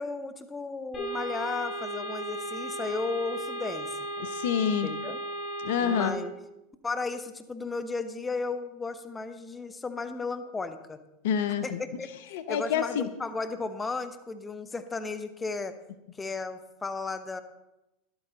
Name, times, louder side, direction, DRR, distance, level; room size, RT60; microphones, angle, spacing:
voice 1, 0.0-3.9 4.8-5.2 5.8-6.3 6.8-11.0 11.6-12.1 12.5-15.7 16.2-17.4, left 3 dB, 15° left, 11 dB, 1.1 m, -34 dB
sound 1, 0.9-6.1, right 1 dB, 35° left, 4.3 m, -35 dB
voice 2, 4.2-4.9 5.6-6.1 11.2-11.8 12.3-13.1, left 8 dB, 70° left, 11 dB, 0.8 m, -27 dB
13.0 x 11.5 x 4.0 m, 0.93 s
hypercardioid pair, 90°, 0 cm